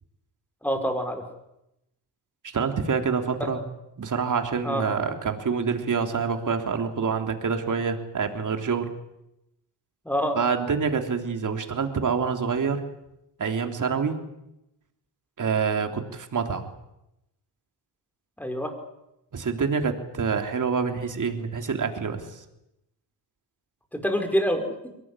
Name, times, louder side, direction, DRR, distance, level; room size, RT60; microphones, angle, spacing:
voice 1, 0.6-1.2 4.6-4.8 10.1-10.4 18.4-18.7 23.9-24.7, equal, 5° left, 4 dB, 5.4 m, -26 dB
voice 2, 2.5-3.6 4.0-8.9 10.3-12.8 13.4-14.2 15.4-16.7 19.3-22.2, right 5 dB, 45° right, 5 dB, 3.5 m, -26 dB
23.0 x 18.5 x 9.9 m, 0.87 s
cardioid pair, 85°, 42 cm